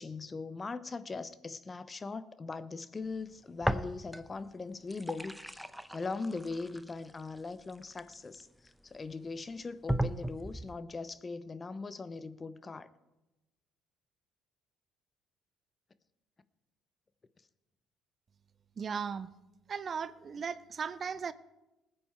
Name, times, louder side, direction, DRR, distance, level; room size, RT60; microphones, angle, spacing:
voice 1, 0.0-12.9, left 4 dB, 30° left, 0.8 m, -40 dB
sound 1, 3.6-4.4 4.7-8.7 9.3-9.4 9.9-10.8, right 1 dB, ahead, 0.7 m, -36 dB
voice 2, 18.8-19.3 19.7-21.3, right 6 dB, 45° right, 0.6 m, -37 dB
19.5 x 8.8 x 4.5 m
hypercardioid pair, 55°, 0 cm